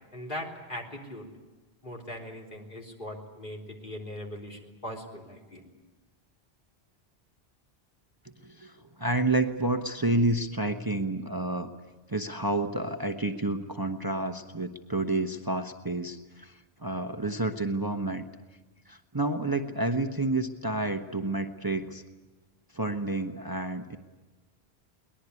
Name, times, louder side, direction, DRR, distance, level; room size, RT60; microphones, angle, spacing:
voice 1, 0.1-1.3 1.8-5.6, left 1 dB, 55° left, 0 dB, 3.9 m, -40 dB
voice 2, 8.4-11.7 12.1-18.2 18.9-22.0 22.7-24.0, right 2 dB, 20° right, 6 dB, 1.0 m, -29 dB
23.0 x 20.0 x 9.7 m, 1.2 s
omnidirectional pair, 1.1 m